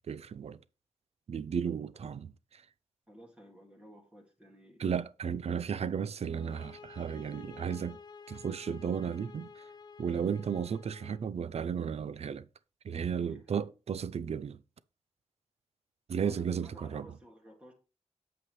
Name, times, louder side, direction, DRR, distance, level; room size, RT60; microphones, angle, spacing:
voice 1, 0.1-0.6 1.3-2.3 4.8-8.0 8.3-9.6 10.0-12.5 12.8-14.6 16.1-17.1, right 7 dB, 65° right, 0.5 m, -34 dB
voice 2, 3.1-4.8 13.2-13.4 16.2-17.7, equal, 10° right, 1.9 m, -55 dB
sound 1, 6.3-11.3, left 5 dB, 40° left, 0.5 m, -51 dB
8.5 x 7.1 x 3.1 m
wide cardioid pair, 155°, 11 cm